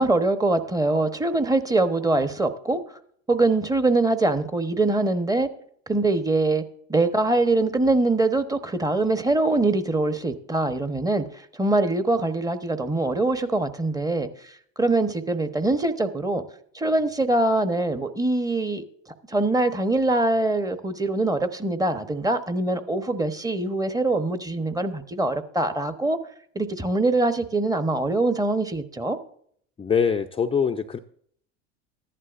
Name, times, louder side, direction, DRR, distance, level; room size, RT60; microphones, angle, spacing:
voice 1, 0.0-3.0 3.3-5.5 5.9-6.6 6.9-16.4 16.7-18.8 19.3-26.2 26.5-29.2, right 2 dB, 10° right, 9 dB, 1.0 m, -23 dB
voice 2, 29.8-31.0, left 6 dB, 15° left, 5 dB, 0.5 m, -23 dB
14.5 x 11.0 x 2.5 m, 0.63 s
hypercardioid pair, 85°, 34 cm